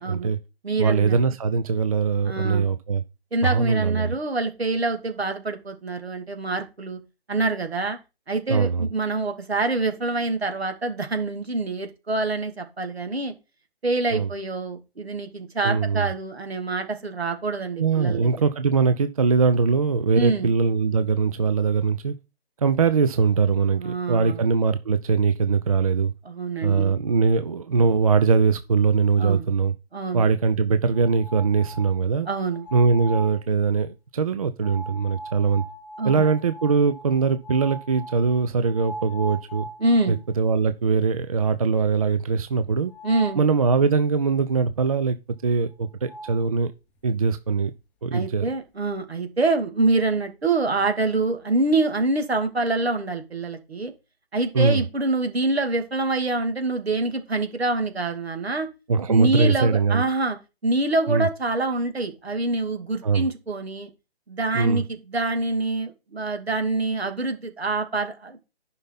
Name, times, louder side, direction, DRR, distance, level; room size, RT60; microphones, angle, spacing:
voice 1, 0.1-0.4 0.8-3.0 3.4-4.1 8.5-8.9 14.1-14.3 15.6-16.1 17.8-22.1 22.6-26.1 26.6-29.7 30.1-32.3 32.7-35.6 36.0-39.7 40.1-42.9 43.4-45.2 45.4-46.7 47.0-47.7 48.0-48.5 54.5-54.8 58.9-60.0 61.1-61.3 63.0-63.3 64.5-64.8, right 5 dB, 35° right, 0.5 m, -21 dB
voice 2, 0.6-1.2 2.2-2.7 3.3-7.0 7.3-8.0 8.3-13.3 13.8-18.3 20.2-20.5 23.8-24.4 26.2-26.9 29.2-29.5 29.9-30.3 32.3-32.7 36.0-36.2 39.8-40.2 43.0-43.4 48.1-53.9 54.3-58.7 59.1-60.4 60.6-63.9 64.3-68.4, right 2 dB, 75° right, 2.5 m, -26 dB
sound 1, 30.9-32.0 32.5-33.4 34.6-40.2 40.7-40.8 41.2-41.3 42.9-43.4 45.7-45.8 46.0-46.4, right 1 dB, 5° left, 0.7 m, -39 dB
11.0 x 5.6 x 4.0 m
figure-of-eight pair, 145°, 32 cm